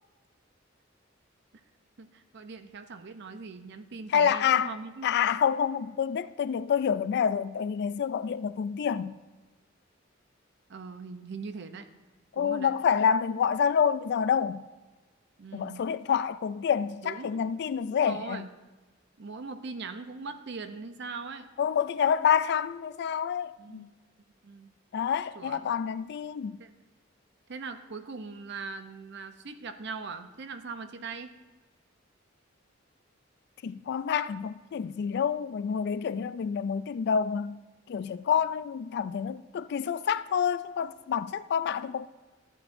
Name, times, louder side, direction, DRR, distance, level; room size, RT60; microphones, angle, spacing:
voice 1, 2.0-5.1 10.7-11.9 12.4-12.7 15.4-15.9 17.0-17.4 17.9-18.5 19.2-21.5 23.6-23.9 24.4-24.7 25.3-25.7 26.6-26.7 27.5-31.4, right 4 dB, 60° right, 0.6 m, -41 dB
voice 2, 4.1-4.7 5.0-9.1 12.3-14.6 15.5-18.4 21.6-23.9 24.9-26.6 33.6-37.6 37.9-42.1, left 7 dB, 55° left, 0.3 m, -28 dB
13.0 x 8.4 x 2.6 m
head